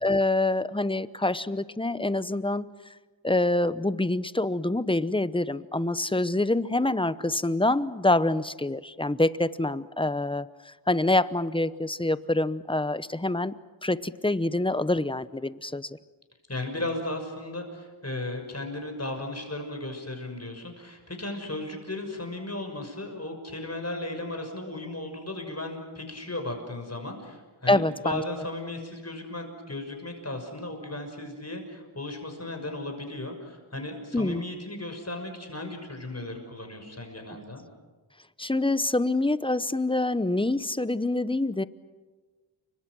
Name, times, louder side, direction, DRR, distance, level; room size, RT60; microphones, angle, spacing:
voice 1, 0.0-2.6 3.2-13.5 13.8-15.9 27.7-28.2 34.1-34.4 38.4-41.6, left 2 dB, 10° left, 15 dB, 0.8 m, -26 dB
voice 2, 16.5-37.6, left 2 dB, 30° left, 4 dB, 6.2 m, -36 dB
29.5 x 24.5 x 6.3 m, 1.3 s
wide cardioid pair, 65°, 49 cm